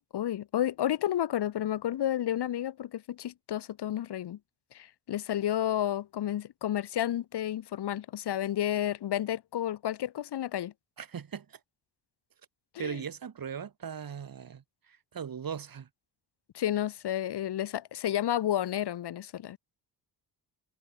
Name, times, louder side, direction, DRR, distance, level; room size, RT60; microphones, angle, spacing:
voice 1, 0.1-4.4 4.7-10.7 12.7-13.0 16.5-19.6, left 11 dB, 70° left, 1.3 m, -31 dB
voice 2, 11.0-11.6 12.8-15.9, right 7 dB, 55° right, 4.1 m, -39 dB
cardioid pair, 95°, 42 cm